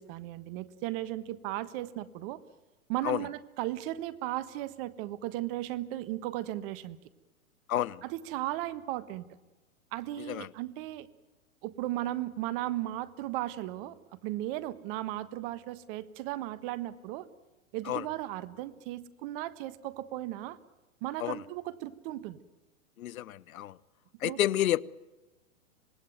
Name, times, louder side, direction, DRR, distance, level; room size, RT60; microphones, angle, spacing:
voice 1, 0.0-2.4 2.9-7.0 8.0-9.3 9.9-11.1 11.6-17.3 17.7-20.6 21.0-22.4 24.2-24.4, right 15 dB, 40° right, 1.4 m, -36 dB
voice 2, 7.7-8.0 10.3-10.5 17.9-18.0 21.2-21.4 23.0-23.8 24.2-24.8, left 13 dB, 75° left, 0.8 m, -30 dB
26.0 x 20.0 x 9.2 m
hypercardioid pair, 130°, 42 cm